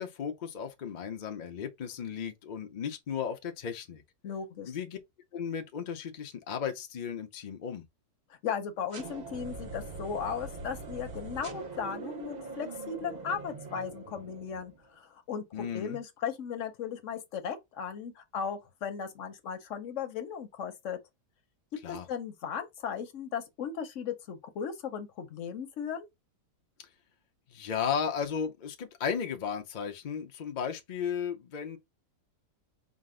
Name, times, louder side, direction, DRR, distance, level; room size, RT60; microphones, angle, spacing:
voice 1, 0.0-4.0 4.7-5.0 5.3-7.8 15.5-16.0 21.8-22.1 27.5-31.8, left 7 dB, 75° left, 0.4 m, -35 dB
voice 2, 4.2-4.7 8.4-21.0 21.9-26.1, left 7 dB, 60° left, 0.9 m, -36 dB
sound 1, 8.9-14.9, right 3 dB, 60° right, 0.4 m, -42 dB
5.0 x 2.0 x 3.7 m
omnidirectional pair, 1.8 m